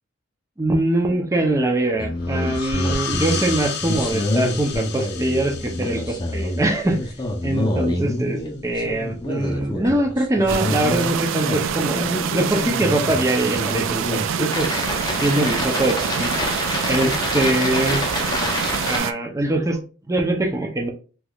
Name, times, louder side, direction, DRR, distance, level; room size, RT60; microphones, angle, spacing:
voice 1, 0.6-7.1 7.4-14.7 15.2-16.3 16.9-18.0 18.9-19.8 20.1-20.9, right 1 dB, 15° right, 2 dB, 0.6 m, -22 dB
sound 1, 2.0-19.0, left 1 dB, 20° left, 0.6 m, -27 dB
sound 2, 2.2-7.6, left 7 dB, 60° left, 0.5 m, -33 dB
sound 3, 10.5-19.1, right 8 dB, 80° right, 0.3 m, -26 dB
3.5 x 3.0 x 2.3 m, 0.37 s
head